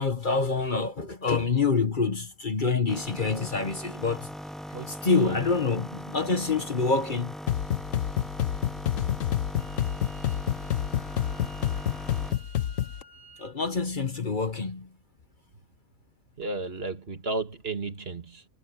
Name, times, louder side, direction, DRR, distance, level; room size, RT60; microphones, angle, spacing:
voice 1, 0.0-4.3 4.9-7.3 13.4-14.9, left 4 dB, 40° left, 1.3 m, -26 dB
sound 1, 2.9-12.4, equal, ahead, 0.6 m, -40 dB
voice 2, 4.7-5.5 16.4-18.5, right 3 dB, 50° right, 2.0 m, -34 dB
sound 2, 7.5-13.0, left 11 dB, 80° left, 1.3 m, -29 dB
Wind instrument woodwind instrument, 9.6-13.6, equal, 65° right, 6.7 m, -52 dB
omnidirectional pair, 1.4 m